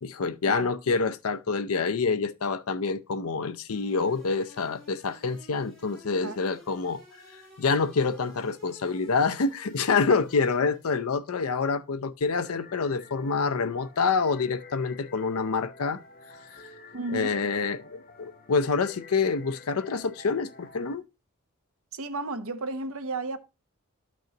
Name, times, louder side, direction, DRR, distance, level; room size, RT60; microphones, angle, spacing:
voice 1, 0.0-7.0 7.6-16.0 17.1-21.0, left 4 dB, 85° left, 0.6 m, -27 dB
sound 1, 3.7-11.1, equal, 5° left, 4.2 m, -53 dB
sound 2, 12.2-21.0, left 3 dB, 45° left, 1.0 m, -49 dB
voice 2, 16.9-17.4 21.9-23.4, right 3 dB, 75° right, 0.9 m, -33 dB
11.5 x 6.2 x 2.9 m
head